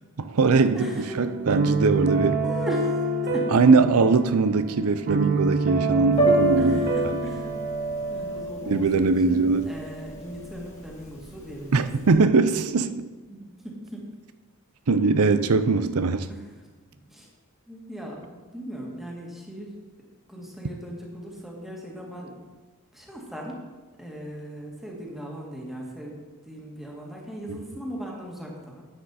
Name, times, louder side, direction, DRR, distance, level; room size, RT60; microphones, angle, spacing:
voice 1, 0.2-0.9 1.2-2.4 3.5-6.8 7.1-7.2 8.7-9.7 11.7-12.9 14.9-16.3, right 4 dB, 70° right, 0.6 m, -21 dB
sound 1, 0.6-8.5, right 2 dB, 50° right, 1.1 m, -28 dB
voice 2, 0.7-1.2 2.4-3.7 6.6-7.5 8.1-11.9 12.8-12.9 13.3-14.1 16.3-16.4 17.1-17.3 17.7-19.8 20.3-22.4 22.9-23.6 24.0-26.2 26.4-28.8, equal, ahead, 1.9 m, -38 dB
Piano, 6.1-12.1, right 2 dB, 30° left, 2.4 m, -28 dB
10.5 x 7.7 x 4.3 m
head